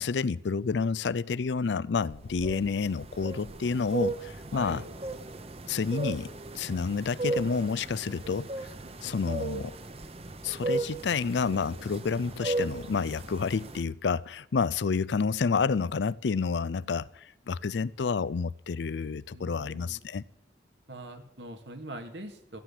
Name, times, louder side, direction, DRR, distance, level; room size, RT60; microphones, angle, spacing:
voice 1, 0.0-4.8 5.7-8.7 9.0-9.8 10.4-20.2, left 5 dB, 85° left, 0.5 m, -29 dB
sound 1, 2.1-13.8, right 2 dB, 35° right, 0.9 m, -36 dB
voice 2, 4.5-4.8 9.0-9.5 19.3-20.0 20.9-22.6, right 1 dB, 85° right, 2.2 m, -43 dB
14.5 x 7.6 x 10.0 m
head